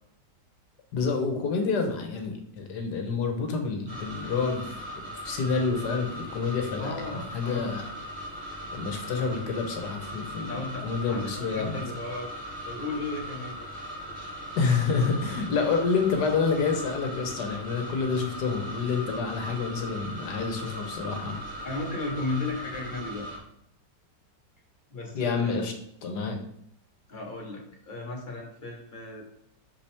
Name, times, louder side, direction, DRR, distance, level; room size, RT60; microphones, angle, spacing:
voice 1, 0.9-7.9 8.7-11.8 14.6-21.4 25.1-25.7 26.0-26.4, left 5 dB, 70° left, 4 dB, 1.5 m, -28 dB
sound 1, 3.9-23.4, equal, 45° right, 3.4 m, -39 dB
voice 2, 6.8-7.8 10.5-12.3 12.6-13.7 20.6-21.0 21.6-23.3 24.9-25.6 27.1-29.2, left 2 dB, 30° left, 0 dB, 1.2 m, -35 dB
6.1 x 5.6 x 3.4 m, 0.74 s
omnidirectional pair, 1.9 m